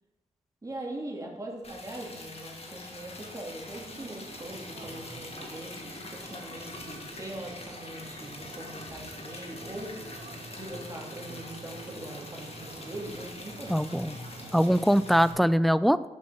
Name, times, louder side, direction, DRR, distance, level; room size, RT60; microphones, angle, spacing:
voice 1, 0.6-9.9 10.5-13.8, right 1 dB, 25° right, -1 dB, 2.6 m, -41 dB
Liquid, 1.6-15.3, left 3 dB, 50° left, 1.7 m, -44 dB
sound 1, 3.7-14.9, right 5 dB, 45° right, 0.6 m, -48 dB
voice 2, 13.7-14.2 14.5-16.1, equal, ahead, 15 dB, 0.4 m, -22 dB
6.1 x 5.9 x 6.3 m, 0.99 s
cardioid pair, 50°, 14 cm